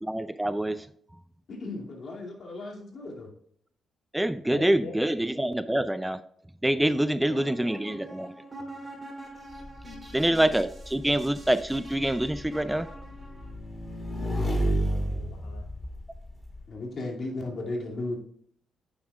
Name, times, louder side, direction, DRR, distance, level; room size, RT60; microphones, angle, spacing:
voice 1, 0.0-0.9 4.1-6.2 6.6-8.3 10.1-12.9, right 1 dB, 10° right, 13 dB, 0.4 m, -26 dB
voice 2, 1.5-3.3 14.1-14.5 16.7-18.2, left 2 dB, 55° left, -1 dB, 2.6 m, -36 dB
voice 3, 4.5-5.0 7.2-7.5 9.8-10.3 14.7-15.7, left 4 dB, 75° left, 2 dB, 1.0 m, -45 dB
sound 1, 7.3-13.5, right 1 dB, 30° right, 3.5 m, -45 dB
Motorcycle / Engine, 9.5-16.6, right 1 dB, 25° left, 2.6 m, -32 dB
9.3 x 7.1 x 2.4 m, 0.64 s
supercardioid pair, 55°, 0 cm